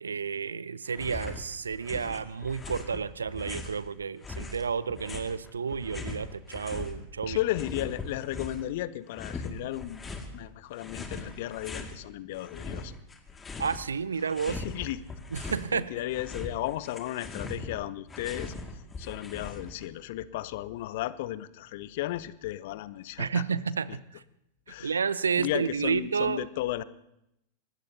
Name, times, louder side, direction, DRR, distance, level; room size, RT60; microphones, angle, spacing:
voice 1, 0.0-7.4 13.6-14.6 15.3-15.9 23.2-24.2 24.8-26.4, right 6 dB, 70° right, 19 dB, 0.6 m, -31 dB
sound 1, 0.9-1.4 1.7-3.8 4.2-6.9 7.2-8.7 9.1-10.3 10.8-11.9 12.3-13.9 14.2-15.7 16.0-19.9, left 3 dB, 15° left, 2.2 m, -40 dB
voice 2, 7.3-12.9 14.5-15.1 15.4-23.4 23.9-24.0 24.7-25.0 25.4-26.8, left 14 dB, 50° left, 18 dB, 0.7 m, -34 dB
24.0 x 19.5 x 2.8 m, 0.82 s
figure-of-eight pair, 90°, 0 cm